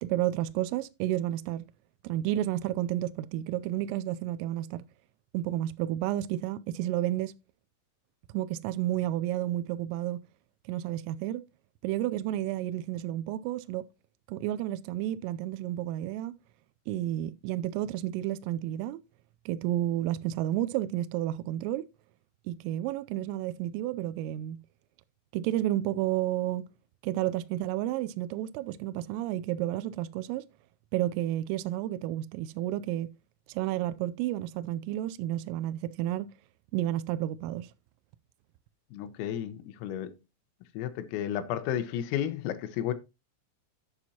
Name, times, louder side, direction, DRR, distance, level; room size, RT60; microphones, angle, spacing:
voice 1, 0.0-1.7 2.0-4.8 5.3-7.3 8.3-10.2 10.7-11.4 11.8-13.9 14.3-16.4 16.9-19.0 19.5-21.9 22.5-24.6 25.3-26.7 27.0-30.4 30.9-33.1 33.5-36.3 36.7-37.7, right 13 dB, 85° right, 3.2 m, -31 dB
voice 2, 38.9-40.1 40.8-42.9, left 10 dB, 85° left, 3.7 m, -32 dB
11.5 x 7.9 x 2.8 m
omnidirectional pair, 6.0 m